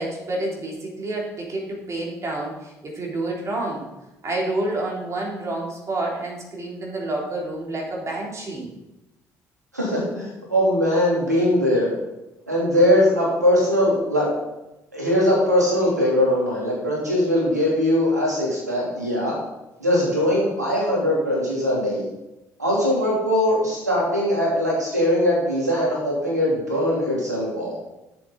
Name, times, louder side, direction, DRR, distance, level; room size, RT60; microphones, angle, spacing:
voice 1, 0.0-3.9 4.2-8.7, right 2 dB, 35° right, -2 dB, 3.7 m, -29 dB
voice 2, 9.7-11.9 12.5-14.3 14.9-19.3 19.8-22.1 22.6-27.7, left 1 dB, 85° right, -4 dB, 3.1 m, -21 dB
12.5 x 7.7 x 4.1 m, 0.98 s
figure-of-eight pair, 50°, 9 cm